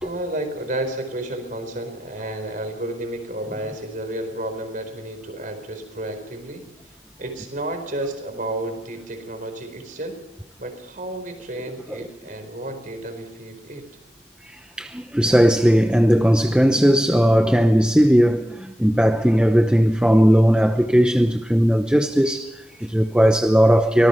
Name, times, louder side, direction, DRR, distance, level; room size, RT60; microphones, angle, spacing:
voice 1, 0.0-10.2 10.6-13.9, right 1 dB, 40° right, 4.5 m, -31 dB
voice 2, 14.4-24.1, equal, 5° right, 0.7 m, -17 dB
25.0 x 18.5 x 5.8 m
head